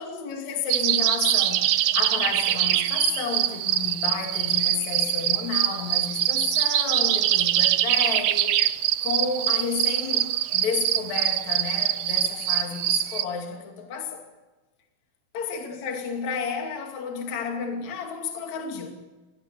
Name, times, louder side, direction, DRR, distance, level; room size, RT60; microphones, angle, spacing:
voice 1, 0.0-8.6 9.0-14.2 15.3-19.0, left 6 dB, 50° left, 3.7 m, -31 dB
sound 1, 0.7-13.2, right 12 dB, 80° right, 1.6 m, -24 dB
24.5 x 20.0 x 7.0 m
omnidirectional pair, 4.3 m